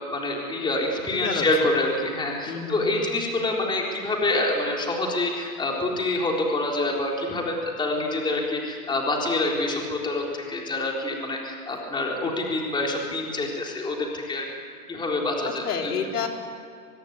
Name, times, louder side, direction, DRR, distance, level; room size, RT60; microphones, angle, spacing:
voice 1, 0.1-14.5 14.9-15.9, left 2 dB, 10° left, -1 dB, 3.9 m, -26 dB
voice 2, 1.1-1.7 2.5-3.0 11.7-11.8 12.2-12.3 15.6-16.3, left 6 dB, 80° left, 2 dB, 4.6 m, -30 dB
24.0 x 23.0 x 9.7 m, 2.3 s
hypercardioid pair, 150°, 45 cm